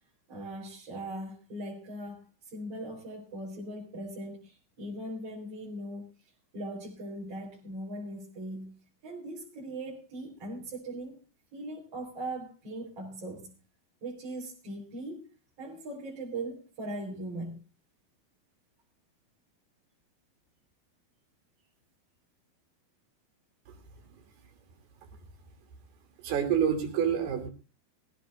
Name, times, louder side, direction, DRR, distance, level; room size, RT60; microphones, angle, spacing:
voice 1, 0.3-2.2 2.5-6.1 6.5-8.8 9.0-11.2 11.5-13.5 14.0-15.2 15.6-17.6, right 1 dB, 40° right, -5 dB, 4.9 m, -39 dB
voice 2, 26.2-27.5, right 8 dB, 85° right, 5 dB, 4.7 m, -27 dB
22.0 x 16.0 x 2.5 m, 0.33 s
omnidirectional pair, 4.4 m